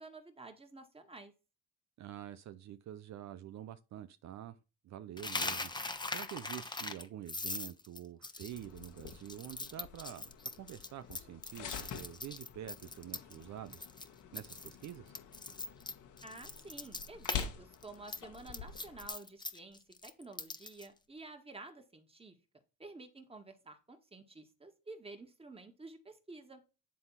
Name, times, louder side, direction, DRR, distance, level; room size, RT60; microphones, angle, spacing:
voice 1, 0.0-1.3 16.2-22.3 22.8-26.6, right 3 dB, 20° right, 1.9 m, -51 dB
voice 2, 2.0-4.5 4.8-10.3 10.6-15.1, right 11 dB, 65° right, 0.6 m, -47 dB
Coin (dropping), 5.2-13.4 13.7-14.1 14.3-17.5 17.7-20.9, left 2 dB, 15° left, 1.0 m, -41 dB
sound 1, 8.5-19.1, left 8 dB, 80° left, 1.5 m, -47 dB
10.5 x 3.8 x 5.7 m
cardioid pair, 90°, 30 cm